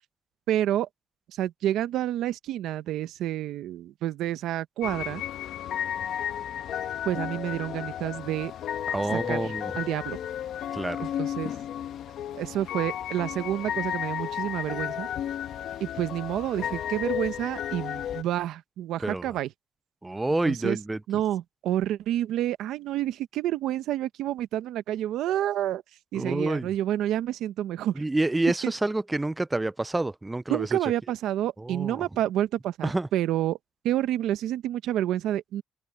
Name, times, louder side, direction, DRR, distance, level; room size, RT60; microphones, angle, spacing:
voice 1, 0.5-0.9 1.4-5.2 7.0-8.5 9.1-10.2 11.0-11.5 12.3-15.1 15.8-19.5 20.4-20.8 21.1-25.8 26.1-27.9 28.6-28.7 30.5-33.6 33.8-35.6, right 12 dB, 75° right, 0.9 m, -29 dB
sound 1, 4.8-18.2, left 10 dB, 65° left, 1.3 m, -33 dB
voice 2, 8.9-9.7 10.7-11.1 19.0-19.4 20.0-21.0 26.1-26.7 28.0-30.9 31.6-32.1 32.8-33.1, right 2 dB, 10° right, 0.4 m, -28 dB
open air
cardioid pair, 130°, 0 cm